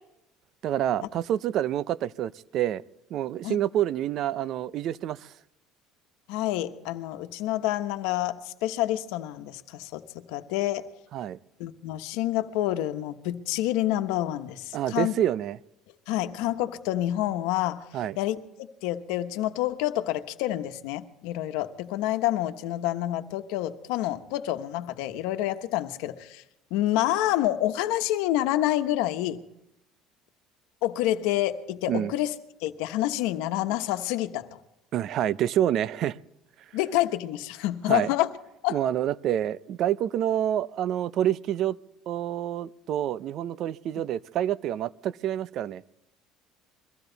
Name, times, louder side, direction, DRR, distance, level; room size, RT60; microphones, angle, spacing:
voice 1, 0.6-2.8 3.1-5.3 11.1-11.4 14.7-15.6 17.9-18.2 31.9-32.1 34.9-36.2 37.9-38.1 38.7-41.8 42.1-45.8, right 11 dB, 55° right, 0.5 m, -27 dB
voice 2, 6.3-10.9 11.6-15.1 16.1-17.8 18.2-26.4 26.7-29.4 30.8-32.3 32.6-34.6 36.7-38.3 38.6-38.8, left 14 dB, 85° left, 1.2 m, -28 dB
23.5 x 15.5 x 4.0 m
cardioid pair, 135°, 0 cm